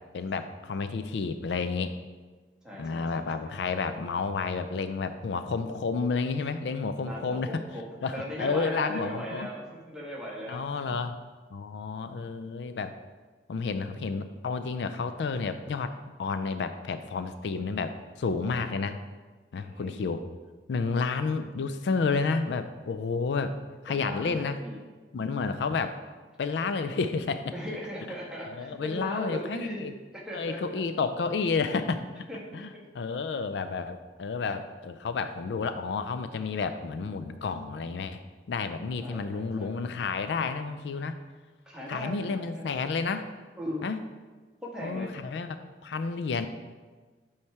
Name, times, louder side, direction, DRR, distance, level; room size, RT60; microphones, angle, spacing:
voice 1, 0.1-1.9 2.8-7.6 8.0-9.5 10.5-11.2 11.5-12.9 13.5-15.9 16.2-19.0 19.5-20.2 20.7-23.5 23.8-24.6 25.1-26.0 26.4-27.5 28.4-29.9 30.3-32.2 32.5-38.2 38.5-41.1 41.9-43.3 43.8-44.0 44.8-45.6 45.8-46.5, left 4 dB, 80° left, 10 dB, 0.4 m, -31 dB
voice 2, 2.6-3.5 7.0-7.8 8.1-10.6 19.5-20.0 23.9-24.8 27.5-30.8 32.3-32.8 39.0-39.7 41.6-42.8 43.6-43.8 44.6-45.1, equal, 5° right, -5 dB, 1.3 m, -38 dB
8.5 x 3.2 x 4.6 m, 1.4 s
head